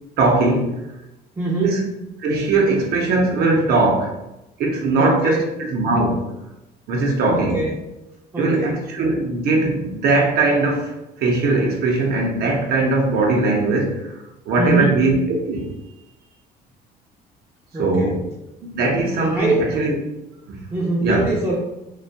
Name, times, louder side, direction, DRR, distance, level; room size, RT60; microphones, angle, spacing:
voice 1, 0.2-0.8 1.6-1.8 2.2-4.2 4.6-6.3 6.9-7.6 8.4-14.1 14.5-15.2 15.5-15.7 17.7-18.2 18.6-19.9 20.5-20.6 21.0-21.3, right 2 dB, 70° right, 0 dB, 0.6 m, -20 dB
voice 2, 1.4-1.8 5.0-5.5 7.3-7.7 8.3-8.8 14.6-15.0 17.7-18.2 19.3-19.8 20.7-21.6, right 2 dB, 15° right, -5 dB, 0.4 m, -23 dB
2.4 x 2.2 x 2.7 m, 0.93 s
cardioid pair, 110°, 17 cm